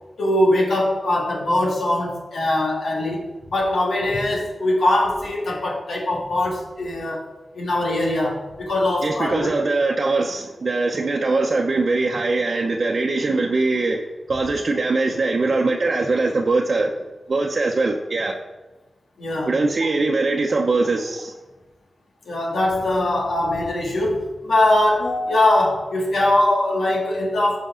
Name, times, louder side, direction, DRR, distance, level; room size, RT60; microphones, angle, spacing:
voice 1, 0.2-7.2 7.5-9.5 19.2-19.5 22.3-27.6, left 1 dB, 90° left, -2 dB, 2.6 m, -21 dB
voice 2, 9.0-14.0 14.3-16.9 17.3-18.4 19.5-21.3, right 3 dB, 55° right, 0 dB, 0.8 m, -21 dB
15.0 x 5.4 x 3.9 m, 1.1 s
wide cardioid pair, 90°, 0 cm